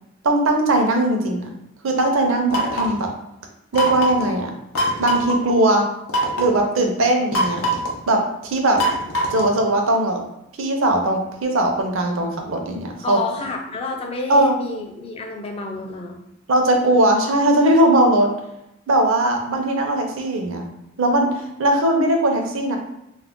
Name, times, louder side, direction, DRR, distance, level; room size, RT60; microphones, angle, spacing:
voice 1, 0.2-1.5 1.8-3.1 3.7-4.6 5.0-5.9 6.4-7.8 8.1-8.8 9.3-10.2 10.6-13.2 14.3-14.6 16.5-18.3 18.9-20.7 21.0-22.8, right 1 dB, 70° right, 3 dB, 0.5 m, -19 dB
sound 1, 2.5-3.0 3.7-4.3 4.7-5.4 6.1-6.6 7.3-8.0 8.8-9.6, right 1 dB, 85° left, 0.6 m, -22 dB
voice 2, 13.0-16.2, left 3 dB, 30° left, 1 dB, 0.4 m, -29 dB
2.3 x 2.1 x 3.5 m, 0.83 s
head